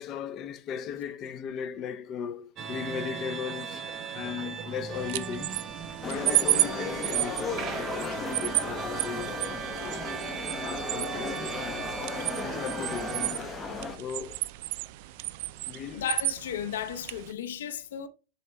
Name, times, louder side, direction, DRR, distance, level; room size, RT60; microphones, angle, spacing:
voice 1, 0.0-3.9 4.1-5.7 6.0-10.1 10.6-12.0 12.3-14.5 15.6-16.1, left 7 dB, 35° left, 0.6 m, -37 dB
sound 1, 2.6-13.3, right 7 dB, 35° right, 0.8 m, -38 dB
sound 2, 4.9-17.3, right 18 dB, 60° right, 0.3 m, -33 dB
sound 3, 6.0-14.0, left 3 dB, 15° left, 1.1 m, -36 dB
voice 2, 15.9-18.1, left 9 dB, 85° left, 0.7 m, -34 dB
9.9 x 4.3 x 2.3 m
supercardioid pair, 135°, 0 cm